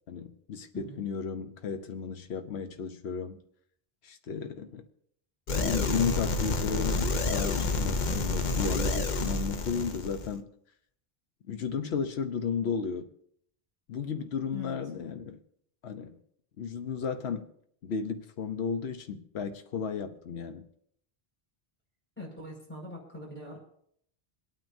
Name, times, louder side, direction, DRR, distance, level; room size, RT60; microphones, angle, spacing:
voice 1, 0.1-3.4 4.0-4.8 5.5-7.0 7.3-10.5 11.5-13.1 13.9-15.4 15.8-16.2 16.6-17.5 17.8-20.6, left 6 dB, 85° left, 1.1 m, -34 dB
sound 1, 5.5-10.3, left 3 dB, 50° left, 0.8 m, -29 dB
voice 2, 22.2-23.6, left 2 dB, 10° left, 5.4 m, -42 dB
27.0 x 9.1 x 2.7 m
omnidirectional pair, 1.1 m